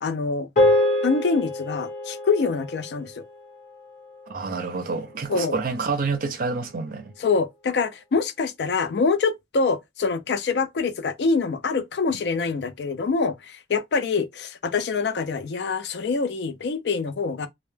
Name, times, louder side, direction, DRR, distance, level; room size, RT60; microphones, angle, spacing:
voice 1, 0.0-0.5 1.0-3.2 5.3-5.6 7.2-17.5, left 4 dB, 70° left, 0.4 m, -25 dB
sound 1, 0.6-5.1, left 1 dB, 50° left, 0.8 m, -26 dB
voice 2, 4.3-7.1, right 4 dB, 50° right, 0.4 m, -28 dB
2.1 x 2.0 x 3.1 m
head